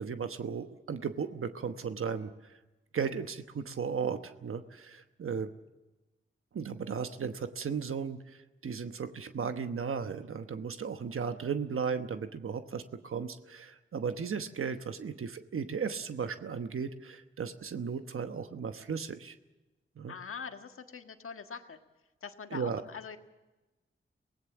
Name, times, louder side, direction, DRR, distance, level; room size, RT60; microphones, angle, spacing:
voice 1, 0.0-2.5 2.9-5.5 6.5-19.3 20.0-20.1 22.5-22.8, right 6 dB, 85° right, 8 dB, 1.1 m, -36 dB
voice 2, 20.1-21.8 22.2-23.2, left 6 dB, 90° left, 6 dB, 1.6 m, -43 dB
24.5 x 18.5 x 7.2 m, 1.1 s
wide cardioid pair, 80°, 21 cm